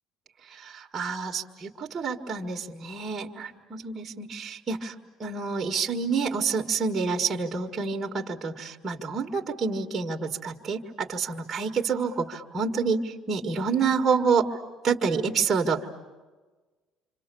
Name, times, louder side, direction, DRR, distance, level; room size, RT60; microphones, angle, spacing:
voice 1, 0.5-4.9 5.2-14.5 14.8-15.9, right 5 dB, 25° right, -1 dB, 1.7 m, -28 dB
27.5 x 26.5 x 6.9 m, 1.3 s
cardioid pair, 145°, 0 cm